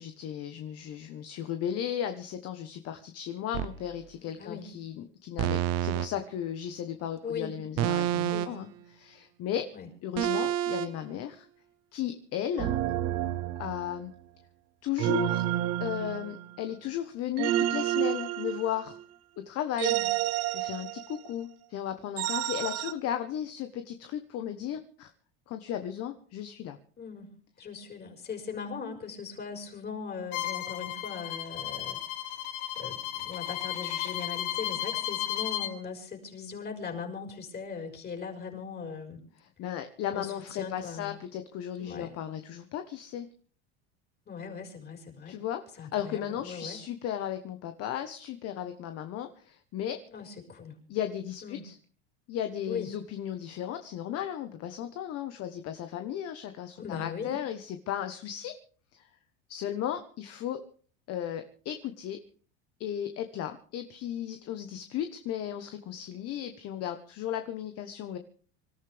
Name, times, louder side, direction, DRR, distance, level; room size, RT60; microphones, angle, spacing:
voice 1, 0.0-9.7 10.0-11.5 11.9-12.8 13.6-14.1 14.8-15.5 15.8-19.0 19.4-20.0 20.5-25.1 25.5-26.8 39.4-43.3 45.2-50.0 50.9-51.7 52.3-58.6 58.9-59.1 59.5-60.6 61.1-62.2 62.8-68.2, left 10 dB, 50° left, 8 dB, 1.4 m, -35 dB
sound 1, 3.5-3.8 5.4-6.1 7.8-8.7 10.2-10.9 12.6-14.0 15.0-16.6 17.4-19.0 19.8-21.3 22.2-22.9, right 13 dB, 55° right, 1.0 m, -29 dB
voice 2, 4.4-4.7 7.2-7.6 8.3-8.5 9.7-9.9 19.7-20.1 27.0-32.4 32.8-39.2 40.1-41.2 41.8-42.1 44.3-45.4 45.8-46.8 50.1-50.8 51.4-51.7 52.7-52.9 56.8-57.4, left 6 dB, 30° left, 2 dB, 5.8 m, -39 dB
Bowed string instrument, 30.3-35.7, left 13 dB, 75° left, 1.5 m, -34 dB
26.0 x 13.5 x 3.5 m, 0.43 s
supercardioid pair, 115°, 31 cm